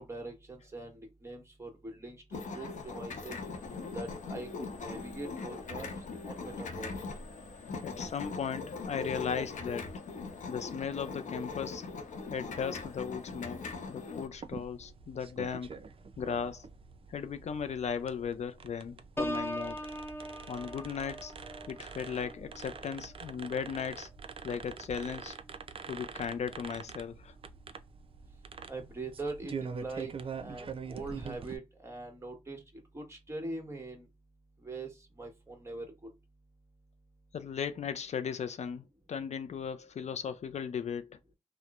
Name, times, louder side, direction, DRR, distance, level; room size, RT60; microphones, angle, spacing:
voice 1, 0.0-3.4 3.9-4.5 4.8-5.9 6.2-6.9 28.7-30.1 30.4-32.6 32.9-34.1 34.6-35.9, right 2 dB, 20° right, 1.2 m, -42 dB
sound 1, 2.3-14.3, left 4 dB, 85° left, 0.8 m, -41 dB
voice 2, 7.8-10.0 10.5-11.9 12.3-15.8 16.2-16.7 17.1-19.8 20.5-21.3 21.7-24.1 24.4-25.4 25.9-27.3 37.3-41.2, left 7 dB, 65° left, 0.4 m, -37 dB
sound 2, 14.3-31.6, right 5 dB, 45° right, 0.4 m, -45 dB
Piano, 19.2-24.8 25.3-25.6, equal, 20° left, 0.7 m, -41 dB
2.9 x 2.0 x 2.3 m
cardioid pair, 60°, 12 cm